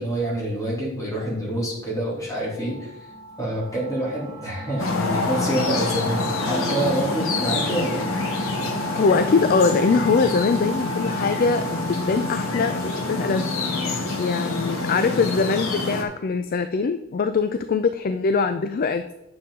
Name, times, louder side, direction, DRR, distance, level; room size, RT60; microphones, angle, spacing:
voice 1, 0.0-2.9 3.4-8.0, right 1 dB, 15° left, -5 dB, 3.3 m, -27 dB
sound 1, 2.4-15.9, right 1 dB, 20° right, 2.8 m, -35 dB
sound 2, 4.8-16.0, left 3 dB, 70° left, 1.3 m, -27 dB
voice 2, 8.9-13.5 13.9-19.1, left 4 dB, 45° left, 10 dB, 0.4 m, -22 dB
9.1 x 6.9 x 3.8 m, 0.89 s
head